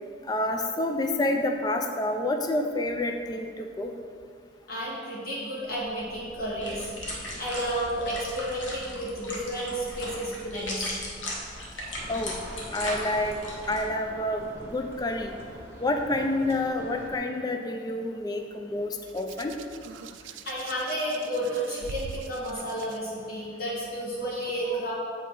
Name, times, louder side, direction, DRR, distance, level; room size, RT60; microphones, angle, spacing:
voice 1, 0.2-3.9 12.1-12.3 12.7-13.4 13.7-15.4 15.8-19.5 24.7-24.8, left 1 dB, 20° left, 4 dB, 0.4 m, -28 dB
voice 2, 4.7-6.9 7.4-10.9 20.5-24.9, equal, 50° left, -7 dB, 1.7 m, -31 dB
sound 1, 5.6-13.8, left 1 dB, 80° left, 1.4 m, -38 dB
sound 2, 11.9-17.2, right 1 dB, 15° right, 1.0 m, -44 dB
Hands, 19.1-23.0 24.0-24.2, right 6 dB, 75° right, 0.3 m, -43 dB
7.9 x 4.0 x 4.6 m, 2.2 s
head